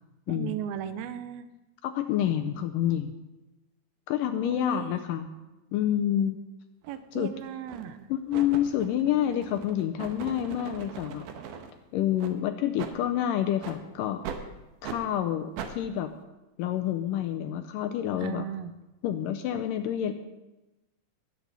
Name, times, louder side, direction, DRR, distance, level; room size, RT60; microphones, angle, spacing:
voice 1, 0.3-1.5 4.4-5.0 6.9-8.1 18.2-18.7, right 10 dB, 90° right, 11 dB, 2.5 m, -36 dB
voice 2, 1.8-3.2 4.1-5.3 5.7-6.4 7.1-7.3 8.1-11.3 11.9-14.2 14.8-16.1 16.6-18.4 19.0-20.1, left 11 dB, 85° left, 7 dB, 2.0 m, -28 dB
sound 1, 6.8-7.0 7.7-8.0 8.3-11.7 12.2-12.3 12.8-13.0 13.6-13.8 14.2-14.4 14.8-15.0 15.6-15.7, right 7 dB, 70° right, 2.3 m, -40 dB
19.5 x 8.3 x 4.0 m, 1.0 s
omnidirectional pair, 4.3 m